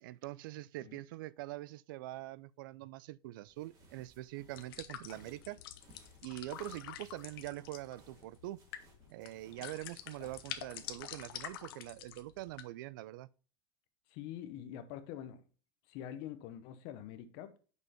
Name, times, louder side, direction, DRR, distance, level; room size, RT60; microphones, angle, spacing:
voice 1, 0.0-5.6 6.2-8.6 9.1-13.3, right 17 dB, 65° right, 0.4 m, -44 dB
sound 1, 3.4-11.2, right 1 dB, 30° right, 2.4 m, -63 dB
sound 2, 4.5-12.6, left 11 dB, 85° left, 1.0 m, -48 dB
voice 2, 14.1-15.4 15.9-17.6, left 10 dB, 45° left, 0.9 m, -45 dB
6.3 x 5.4 x 4.3 m
supercardioid pair, 175°, 12 cm